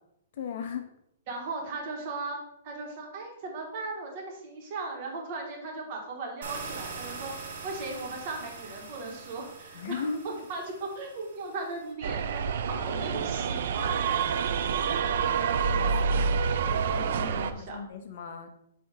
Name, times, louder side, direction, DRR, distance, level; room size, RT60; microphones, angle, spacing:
voice 1, 0.3-0.8 9.7-10.2 14.9-15.0 15.6-15.9 16.9-18.5, left 5 dB, 45° left, 6 dB, 0.7 m, -37 dB
voice 2, 1.3-14.0 16.6-17.8, right 3 dB, 30° right, 0 dB, 1.4 m, -38 dB
sound 1, 6.4-11.9, right 4 dB, 70° right, 1.8 m, -43 dB
sound 2, 12.0-17.5, right 6 dB, 50° right, 0.4 m, -27 dB
Bowed string instrument, 12.6-16.3, right 1 dB, 10° right, 1.0 m, -50 dB
7.5 x 2.8 x 5.0 m, 0.78 s
hypercardioid pair, 175°, 0 cm